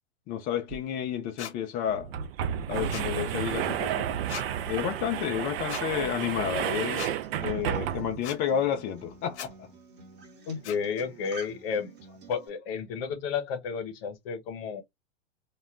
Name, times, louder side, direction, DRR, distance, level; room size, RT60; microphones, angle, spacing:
voice 1, 0.3-2.1 2.7-4.1 4.7-7.1 7.4-9.7, left 9 dB, 25° left, 0.4 m, -31 dB
sound 1, 0.7-0.8 1.1-1.2 1.9-8.3, right 10 dB, 60° right, 0.5 m, -31 dB
sound 2, 1.4-1.5 2.9-3.1 4.3-4.5 5.7-5.8 7.0-7.1 8.2-8.4 9.3-9.5 10.6-10.8, left 10 dB, 75° left, 0.6 m, -38 dB
Acoustic guitar, 4.5-12.5, right 3 dB, 30° right, 1.0 m, -50 dB
voice 2, 10.5-11.9 12.3-14.8, left 6 dB, 60° left, 0.9 m, -32 dB
2.2 x 2.1 x 3.5 m
hypercardioid pair, 110°, 34 cm